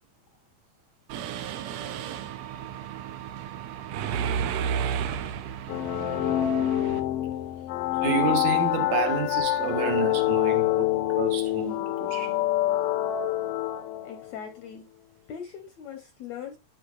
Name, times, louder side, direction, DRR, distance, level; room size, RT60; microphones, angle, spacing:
Mechanisms, 1.1-7.0, right 8 dB, 85° right, 1.6 m, -32 dB
sound 1, 5.7-14.3, left 14 dB, 90° left, 2.5 m, -26 dB
voice 1, 8.0-12.4, right 7 dB, 65° right, 2.2 m, -30 dB
voice 2, 14.0-14.8 15.3-16.6, left 8 dB, 70° left, 1.7 m, -40 dB
10.5 x 4.8 x 2.4 m
omnidirectional pair, 4.0 m